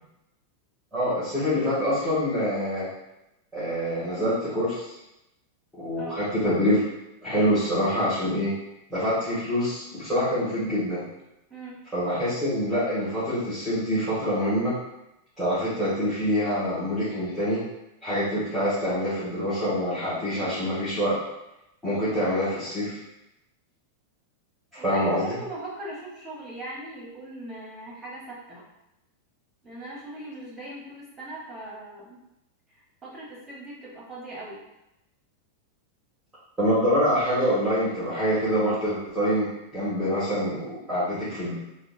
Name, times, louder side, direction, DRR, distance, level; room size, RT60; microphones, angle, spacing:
voice 1, 0.9-2.9 3.5-4.9 5.8-6.8 7.2-8.5 8.9-11.0 11.9-14.7 15.4-17.6 18.0-21.1 21.8-23.0 24.7-25.2 36.6-41.5, equal, 5° right, -13 dB, 1.5 m, -25 dB
voice 2, 24.8-28.6 29.6-32.2 33.0-34.6, right 2 dB, 20° right, -4 dB, 1.1 m, -39 dB
3.5 x 2.2 x 2.6 m, 0.90 s
figure-of-eight pair, 90°, 0 cm